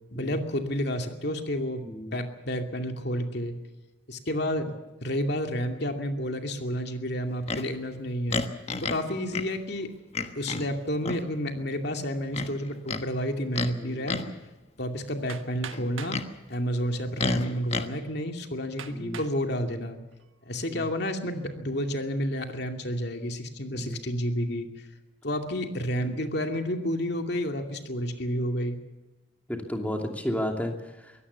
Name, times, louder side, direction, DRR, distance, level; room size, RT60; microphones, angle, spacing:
voice 1, 0.1-1.8 2.1-3.5 4.1-4.7 5.0-8.4 8.8-9.9 10.4-14.2 14.8-16.2 16.5-20.0 20.5-24.7 25.2-28.8, equal, 55° left, 5 dB, 2.5 m, -30 dB
voice 2, 1.8-2.1 4.4-4.5 9.1-9.2 13.7-14.0 17.5-17.6 18.9-19.2 20.7-20.8 23.7-24.0 26.1-26.2 29.5-30.7 31.0-31.1, equal, 5° left, 3 dB, 2.6 m, -33 dB
Livestock farm animals working animals, 7.5-7.7 8.3-9.0 9.3-9.5 10.1-10.7 11.0-11.3 12.3-13.0 13.5-13.7 14.1-14.4 15.7-16.3 17.2-17.9, left 3 dB, 30° left, 1.3 m, -31 dB
Hammer, 15.3-16.2 17.1-17.2 17.8-17.9 18.8-19.4 20.0-20.4, right 7 dB, 80° right, 1.5 m, -42 dB
23.5 x 17.0 x 7.0 m, 1.1 s
head